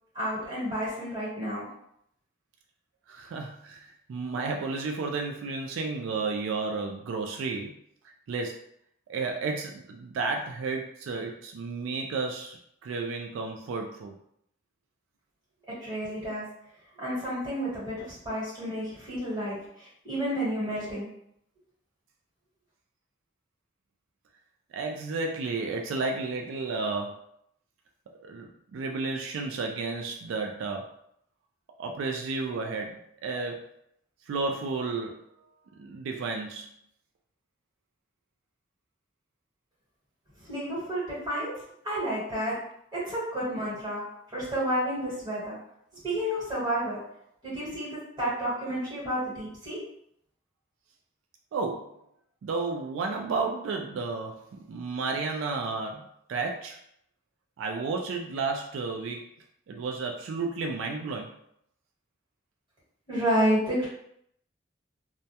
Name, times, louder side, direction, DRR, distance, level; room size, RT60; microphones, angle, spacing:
voice 1, 0.1-1.7 15.7-16.5 17.0-21.1 40.4-41.5 41.8-42.6 42.9-44.0 44.3-45.6 46.0-47.0 47.4-49.8 63.1-63.9, equal, 20° right, -9 dB, 1.2 m, -30 dB
voice 2, 3.1-7.7 8.3-8.6 9.1-14.2 24.7-27.2 28.2-30.9 31.8-33.7 34.3-35.2 35.8-36.7 51.5-51.9 52.4-56.8 57.6-59.3 59.7-61.3, right 4 dB, 90° right, 2 dB, 0.3 m, -32 dB
2.2 x 2.1 x 2.7 m, 0.73 s
head